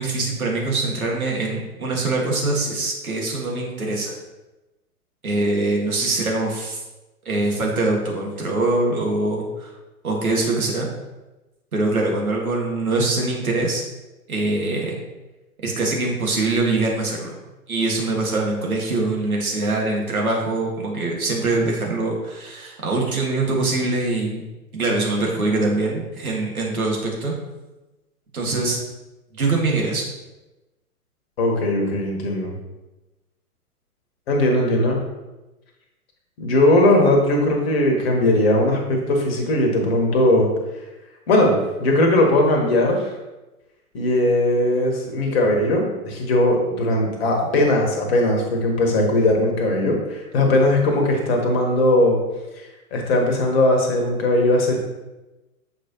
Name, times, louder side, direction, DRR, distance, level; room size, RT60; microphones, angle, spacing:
voice 1, 0.0-4.2 5.2-6.8 7.3-9.7 10.0-10.9 11.7-13.8 14.3-15.0 15.6-17.4 17.7-24.5 24.7-27.3 28.3-28.8 29.3-30.0, right 2 dB, 70° right, -1 dB, 1.9 m, -23 dB
voice 2, 31.4-32.5 34.3-35.0 36.4-40.5 41.3-43.1 43.9-52.2 52.5-52.7 52.9-54.8, left 1 dB, 40° left, 1 dB, 1.5 m, -19 dB
7.2 x 4.8 x 3.0 m, 1.1 s
figure-of-eight pair, 110°, 44 cm